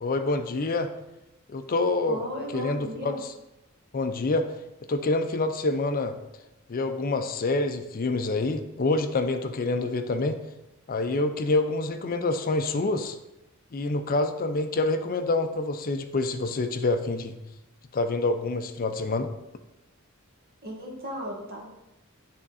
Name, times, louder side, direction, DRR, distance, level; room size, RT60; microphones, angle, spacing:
voice 1, 0.0-0.9 1.5-2.2 2.5-3.1 3.9-4.5 4.9-6.1 6.7-10.4 10.9-13.2 13.7-17.4 17.9-19.3, left 2 dB, 40° left, 8 dB, 0.5 m, -27 dB
voice 2, 2.1-3.2 20.6-21.7, equal, 45° right, -1 dB, 1.5 m, -35 dB
9.8 x 3.6 x 4.1 m, 0.92 s
head